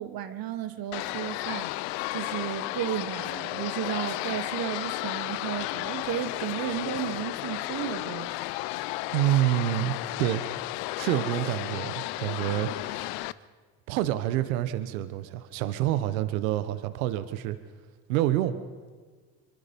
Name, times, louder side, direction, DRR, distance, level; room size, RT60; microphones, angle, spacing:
voice 1, 0.0-1.7 2.1-8.3, right 11 dB, 60° right, 11 dB, 1.6 m, -33 dB
sound 1, 0.9-13.3, left 18 dB, 75° left, 0.7 m, -33 dB
voice 2, 9.1-10.4 11.0-13.2 13.9-17.6 18.1-18.6, right 13 dB, 90° right, 12 dB, 1.2 m, -27 dB
25.5 x 23.0 x 5.3 m, 1.5 s
supercardioid pair, 80°, 40 cm